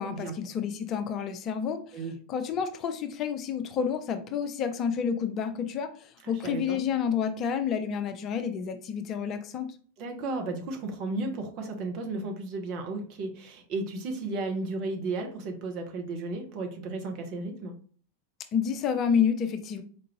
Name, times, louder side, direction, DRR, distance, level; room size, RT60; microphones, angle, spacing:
voice 1, 0.0-9.7 18.5-19.8, left 7 dB, 35° left, 7 dB, 0.4 m, -29 dB
voice 2, 6.2-6.8 10.0-17.7, right 3 dB, 40° right, 3 dB, 0.9 m, -34 dB
4.5 x 2.5 x 3.0 m, 0.43 s
figure-of-eight pair, 90°, 0 cm